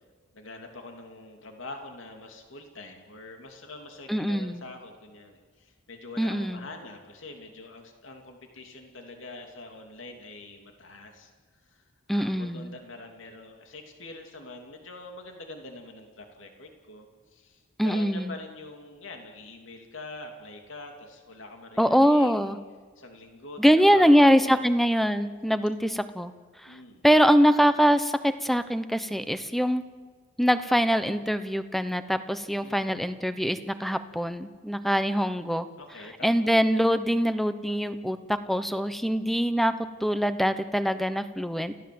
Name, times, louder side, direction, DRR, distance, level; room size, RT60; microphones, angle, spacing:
voice 1, 0.3-11.3 11.7-22.3 23.0-24.7 26.6-27.4 32.6-33.0 35.8-36.6, left 2 dB, 80° left, 3 dB, 2.9 m, -44 dB
voice 2, 4.1-4.6 6.2-6.7 12.1-12.7 17.8-18.3 21.8-22.6 23.6-26.3 26.6-26.7 27.0-29.8 30.4-35.7 36.2-39.7 40.0-41.7, equal, ahead, 11 dB, 0.9 m, -23 dB
29.5 x 16.0 x 7.9 m, 1.5 s
head